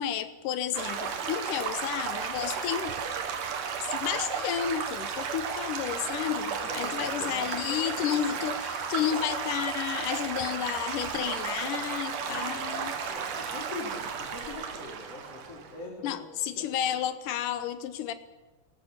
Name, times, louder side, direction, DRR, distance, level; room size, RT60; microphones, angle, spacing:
voice 1, 0.0-2.9 3.8-12.9 16.0-18.1, left 10 dB, 75° left, 12 dB, 2.5 m, -32 dB
Stream / Gurgling / Trickle dribble, 0.7-15.8, right 6 dB, 70° right, 3.2 m, -34 dB
voice 2, 6.5-8.1 9.1-9.6 10.2-10.6 12.2-16.3 16.6-16.7 17.3-17.4, left 3 dB, 50° left, -3 dB, 3.9 m, -43 dB
21.0 x 18.5 x 7.4 m, 1.2 s
omnidirectional pair, 3.9 m